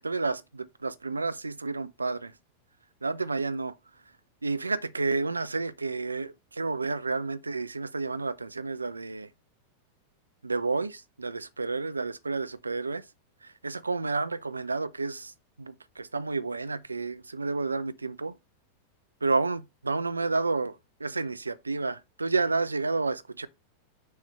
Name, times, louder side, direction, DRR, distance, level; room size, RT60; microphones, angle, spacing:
voice 1, 0.0-2.3 3.0-3.7 4.4-9.3 10.4-13.0 13.4-15.3 15.6-18.3 19.2-20.8 21.0-23.5, right 3 dB, 80° right, 0.4 m, -30 dB
6.4 x 3.3 x 5.3 m
figure-of-eight pair, 90°, 0 cm